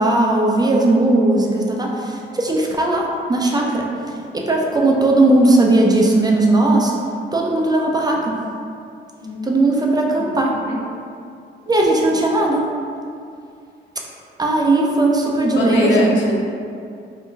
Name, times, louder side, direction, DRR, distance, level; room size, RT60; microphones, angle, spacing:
voice 1, 0.0-3.9 4.3-6.9 7.3-8.4 9.4-10.6 11.7-12.7 14.4-16.2, right 2 dB, 20° right, -1 dB, 0.4 m, -17 dB
voice 2, 15.5-16.3, left 2 dB, 75° left, -3 dB, 0.6 m, -21 dB
3.7 x 2.1 x 2.6 m, 2.4 s
cardioid pair, 90°, 20 cm